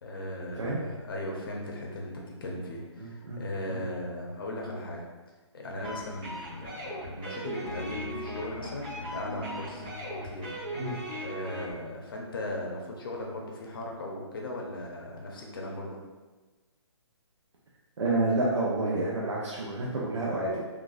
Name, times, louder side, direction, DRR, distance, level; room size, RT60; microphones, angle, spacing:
voice 1, 0.0-5.1 5.5-9.9 10.2-10.5 11.2-16.0, left 1 dB, 50° left, -1 dB, 0.7 m, -37 dB
voice 2, 3.0-3.4 3.7-3.8 10.7-11.0 18.0-20.6, right 2 dB, 75° right, -5 dB, 0.7 m, -29 dB
sound 1, 5.8-11.7, equal, 20° right, 0.8 m, -38 dB
3.9 x 2.4 x 2.4 m, 1.3 s
hypercardioid pair, 165°, 15 cm